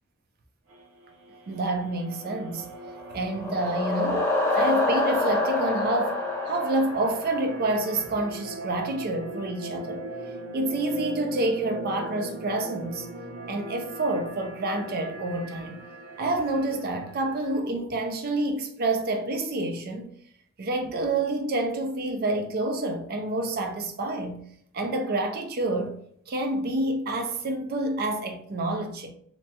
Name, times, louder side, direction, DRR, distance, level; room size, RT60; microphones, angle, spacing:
sound 1, 0.7-17.6, right 1 dB, 80° right, 0.7 m, -40 dB
voice 1, 1.5-2.7 3.1-10.0 10.5-13.1 13.5-15.8 16.2-20.1 20.6-24.4 24.7-26.0 26.3-29.1, right 2 dB, 45° right, 0.4 m, -28 dB
sound 2, 3.0-7.9, left 2 dB, 15° left, 0.5 m, -27 dB
2.9 x 2.2 x 2.7 m
head